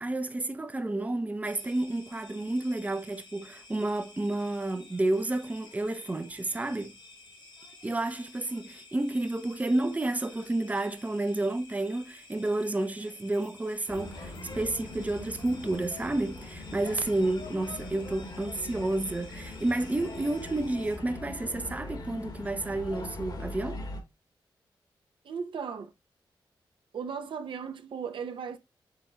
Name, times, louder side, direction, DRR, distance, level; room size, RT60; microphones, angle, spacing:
voice 1, 0.0-6.9 7.8-23.8, right 2 dB, 15° right, 0.5 m, -30 dB
sound 1, 1.4-21.0, left 3 dB, 75° left, 2.2 m, -52 dB
sound 2, 13.9-24.0, left 2 dB, 55° left, 1.4 m, -41 dB
voice 2, 25.2-25.9 26.9-28.6, right 6 dB, 75° right, 0.7 m, -36 dB
5.7 x 4.1 x 2.3 m
cardioid pair, 75°, 9 cm